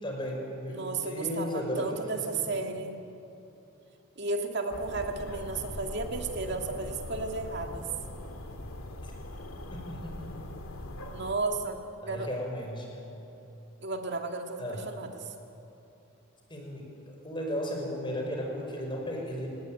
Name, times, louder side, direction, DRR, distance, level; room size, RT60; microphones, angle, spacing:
voice 1, 0.0-2.0 2.3-2.4 9.0-9.1 9.7-10.6 12.0-12.9 14.6-14.8 16.5-19.6, equal, 20° left, 0 dB, 5.4 m, -35 dB
voice 2, 0.7-3.0 4.2-7.9 11.1-11.8 12.0-12.3 13.8-15.3, right 3 dB, 50° right, 3 dB, 2.3 m, -33 dB
sound 1, 4.7-11.3, left 1 dB, 80° left, 2.1 m, -41 dB
29.5 x 19.0 x 9.2 m, 2.9 s
head